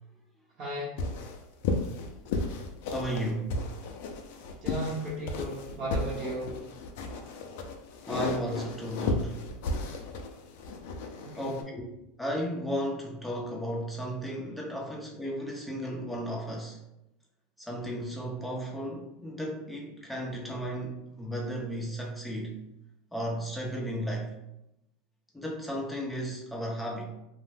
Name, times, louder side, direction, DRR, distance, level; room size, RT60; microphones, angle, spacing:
voice 1, 0.6-0.9 4.6-6.5 11.2-11.3, right 1 dB, 40° right, -6 dB, 0.7 m, -35 dB
sound 1, 1.0-11.6, left 3 dB, 70° left, 0.4 m, -34 dB
voice 2, 2.9-3.6 8.1-9.4 11.4-11.8 12.2-16.8 17.6-22.6 23.1-24.3 25.3-27.1, equal, 5° left, -2 dB, 0.6 m, -34 dB
2.6 x 2.1 x 3.3 m, 0.87 s
supercardioid pair, 130°, 0 cm